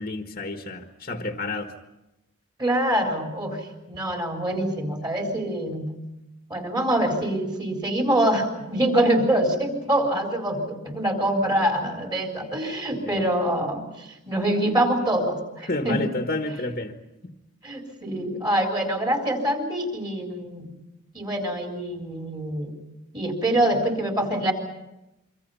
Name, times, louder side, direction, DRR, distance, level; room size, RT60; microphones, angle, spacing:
voice 1, 0.0-1.7 13.0-13.2 15.7-17.3, left 2 dB, 40° left, 5 dB, 1.5 m, -30 dB
voice 2, 2.6-5.9 6.5-16.1 17.6-20.8 21.1-22.8 23.1-24.5, right 1 dB, 20° right, 2 dB, 3.9 m, -25 dB
26.0 x 25.0 x 5.6 m, 0.95 s
head